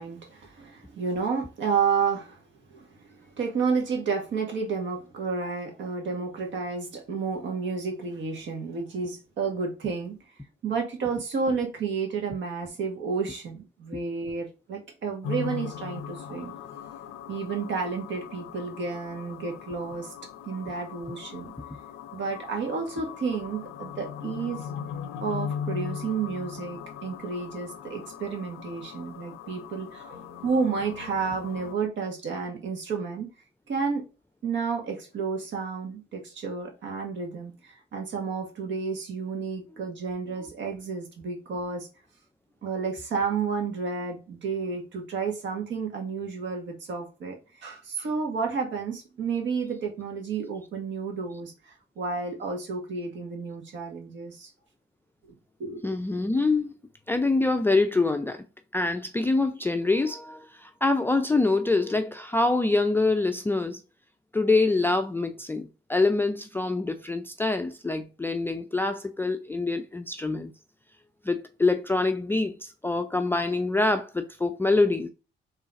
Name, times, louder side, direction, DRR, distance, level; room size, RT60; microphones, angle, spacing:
voice 1, 0.0-2.4 2.7-10.2 10.6-16.5 17.3-20.1 20.4-21.5 22.1-24.6 25.2-33.3 33.7-34.0 34.4-41.9 42.6-54.5 55.6-55.8, right 5 dB, 70° right, 1.6 m, -31 dB
sound 1, 15.2-31.7, left 8 dB, 85° left, 0.5 m, -39 dB
voice 2, 55.8-56.7 57.1-58.4 58.7-63.8 64.3-70.5 71.2-75.1, left 3 dB, 10° left, 0.4 m, -25 dB
3.8 x 3.1 x 4.0 m
cardioid pair, 90°, 20 cm